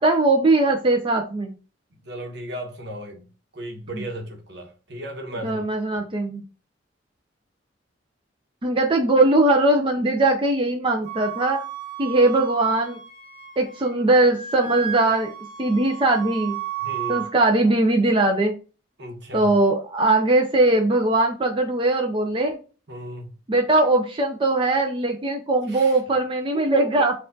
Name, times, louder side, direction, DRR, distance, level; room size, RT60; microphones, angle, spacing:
voice 1, 0.0-1.5 3.9-4.0 5.4-6.4 8.6-11.6 12.0-13.0 13.6-15.3 15.6-16.6 17.1-18.5 19.3-22.6 23.5-27.1, right 2 dB, 30° right, 0.5 m, -20 dB
voice 2, 2.0-3.3 3.5-5.7 6.0-6.1 16.8-17.2 19.0-19.5 22.9-23.3 25.7-26.0 26.5-26.9, equal, 65° right, 1.1 m, -35 dB
Wind instrument woodwind instrument, 11.0-14.0 14.2-17.3, right 10 dB, 45° right, 1.8 m, -33 dB
4.6 x 2.4 x 3.8 m
head